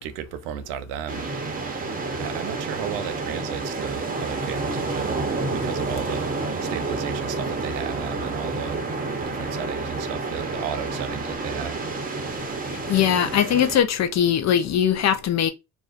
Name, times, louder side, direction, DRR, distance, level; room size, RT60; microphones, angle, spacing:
voice 1, 0.0-1.3 2.2-5.3 5.5-6.2 6.6-8.8 9.2-11.8, right 9 dB, 70° right, 0.5 m, -34 dB
sound 1, 1.1-13.8, right 3 dB, 20° right, 0.7 m, -29 dB
voice 2, 12.9-15.5, left 9 dB, 40° left, 0.5 m, -20 dB
2.4 x 2.1 x 2.4 m
hypercardioid pair, 65°, 41 cm